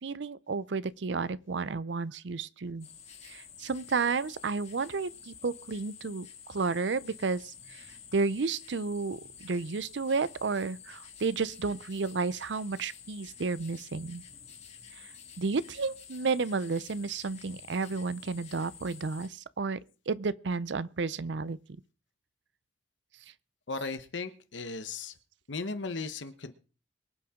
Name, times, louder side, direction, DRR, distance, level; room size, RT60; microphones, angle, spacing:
voice 1, 0.0-2.9 3.2-7.9 8.1-14.2 15.0-15.1 15.4-19.8 20.1-21.6, right 4 dB, 70° right, 0.6 m, -32 dB
sound 1, 2.8-19.3, left 8 dB, 35° left, 2.0 m, -50 dB
voice 2, 23.7-25.1 25.5-26.5, left 3 dB, 80° left, 1.1 m, -36 dB
23.5 x 8.6 x 3.7 m
head